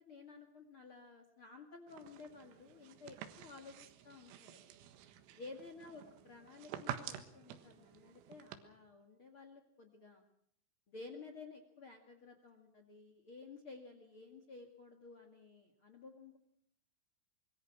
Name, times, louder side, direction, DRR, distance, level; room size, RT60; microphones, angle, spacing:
voice 1, 0.0-4.6 5.4-10.2 10.9-16.4, left 3 dB, 70° left, 6 dB, 1.2 m, -54 dB
sound 1, 1.9-8.6, right 11 dB, 85° right, 4.2 m, -49 dB
25.0 x 22.0 x 6.1 m, 0.66 s
omnidirectional pair, 6.0 m